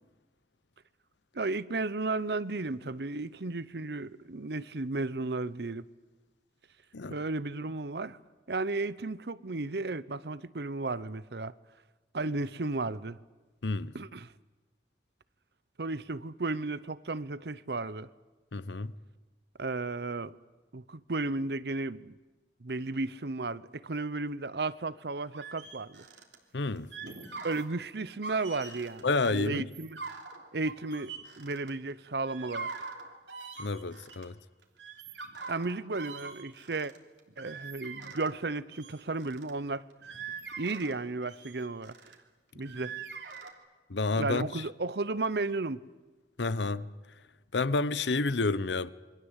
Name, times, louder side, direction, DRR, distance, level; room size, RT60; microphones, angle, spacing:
voice 1, 1.3-5.8 7.1-8.2 8.5-11.5 12.1-13.2 13.9-14.3 15.8-18.1 19.6-20.3 20.7-22.1 22.6-26.0 27.4-30.0 30.5-31.1 31.4-32.7 35.5-36.9 37.4-39.8 40.6-42.1 42.5-42.9 44.2-45.8, right 3 dB, 65° right, 0.8 m, -34 dB
voice 2, 13.6-13.9 18.5-18.9 26.5-26.9 29.0-29.7 33.6-34.3 43.9-44.6 46.4-46.9 47.5-48.9, left 3 dB, 85° left, 0.9 m, -29 dB
sound 1, 25.3-26.4 26.8-27.7 28.1-29.0 29.6-31.9 32.3-34.3 34.6-38.4 38.7-39.5 39.9-42.2 42.6-43.5, right 5 dB, 85° right, 3.2 m, -43 dB
27.5 x 23.5 x 8.2 m
head